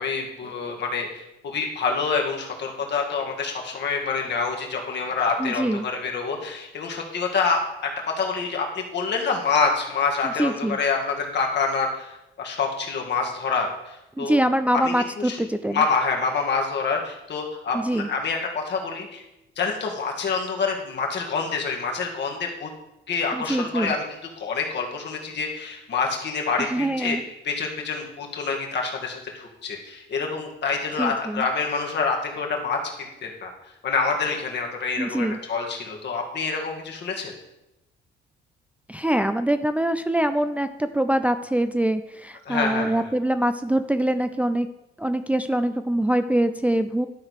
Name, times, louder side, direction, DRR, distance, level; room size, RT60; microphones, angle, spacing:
voice 1, 0.0-7.9 8.2-14.4 14.7-15.4 15.7-19.2 19.6-22.7 23.1-27.2 27.4-33.5 33.8-37.3 42.5-43.0, left 4 dB, 60° left, 1 dB, 2.0 m, -27 dB
voice 2, 5.4-5.8 10.2-10.8 14.2-15.8 17.7-18.1 23.3-23.9 26.6-27.2 31.0-31.5 35.0-35.4 38.9-44.7 45.0-47.1, right 1 dB, 5° right, 9 dB, 0.4 m, -24 dB
11.5 x 3.9 x 6.4 m, 0.90 s
cardioid pair, 90°, 20 cm